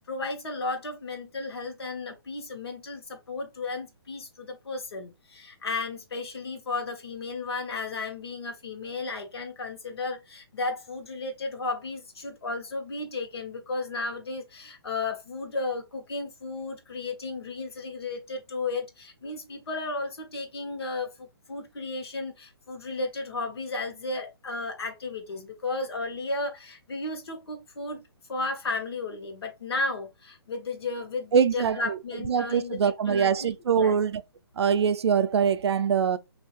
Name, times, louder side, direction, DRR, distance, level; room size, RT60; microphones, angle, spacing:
voice 1, 0.0-28.0 28.3-34.0, left 3 dB, 75° left, 1.2 m, -34 dB
voice 2, 31.3-31.8 32.3-34.2 34.6-36.2, right 7 dB, 90° right, 0.4 m, -23 dB
3.1 x 2.7 x 3.0 m
hypercardioid pair, 170°, 13 cm